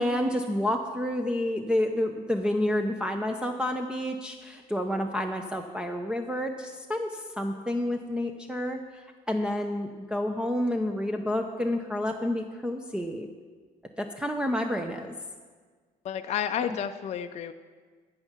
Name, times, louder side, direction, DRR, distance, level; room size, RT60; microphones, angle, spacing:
voice 1, 0.0-8.8 9.3-13.3 14.0-15.1, left 1 dB, 5° right, 1 dB, 0.6 m, -29 dB
voice 2, 16.0-17.5, left 9 dB, 40° left, 7 dB, 0.4 m, -31 dB
14.5 x 5.7 x 6.0 m, 1.5 s
cardioid pair, 110°, 17 cm